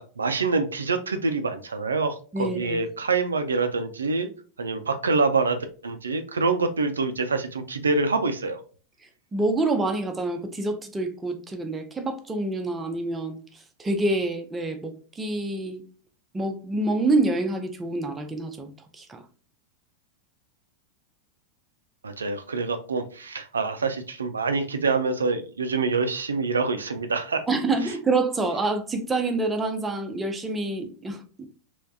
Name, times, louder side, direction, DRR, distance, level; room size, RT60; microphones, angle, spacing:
voice 1, 0.0-4.3 4.6-5.6 5.8-8.6 22.0-27.4, right 4 dB, 75° right, 0.4 m, -26 dB
voice 2, 2.3-2.9 9.3-15.8 16.3-19.2 27.5-31.4, right 2 dB, 15° right, 0.6 m, -27 dB
3.3 x 3.0 x 2.6 m
figure-of-eight pair, 90°, 0 cm